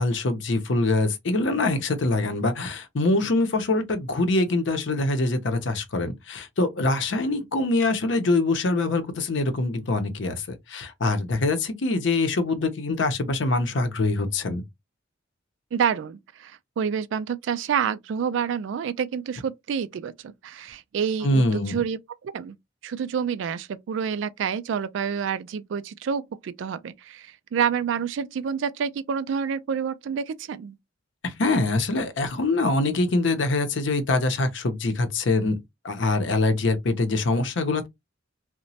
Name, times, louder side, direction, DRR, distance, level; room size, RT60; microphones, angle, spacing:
voice 1, 0.0-14.6 21.2-21.8 31.2-37.9, left 2 dB, 70° left, 0.6 m, -24 dB
voice 2, 15.7-22.6 22.8-30.8, right 7 dB, 70° right, 0.3 m, -28 dB
2.9 x 2.1 x 2.7 m
head